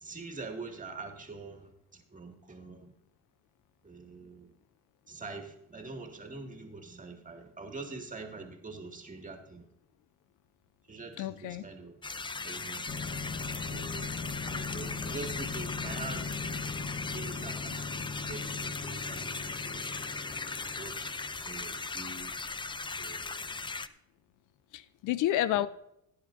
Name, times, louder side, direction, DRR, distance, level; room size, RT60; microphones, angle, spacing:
voice 1, 0.0-2.9 3.8-4.5 5.1-9.6 10.9-11.9 12.4-12.9 13.7-14.1 14.4-16.6 17.1-20.1 20.8-21.1 21.5-22.3 23.0-23.6, right 3 dB, 25° right, 3 dB, 2.1 m, -44 dB
voice 2, 11.2-11.7 24.7-25.7, left 13 dB, 85° left, 16 dB, 0.6 m, -30 dB
sound 1, 12.0-23.9, left 4 dB, 15° left, 0.5 m, -38 dB
sound 2, 12.9-21.5, left 4 dB, 40° left, 1.2 m, -40 dB
17.5 x 10.0 x 2.6 m, 0.79 s
cardioid pair, 90°, 30 cm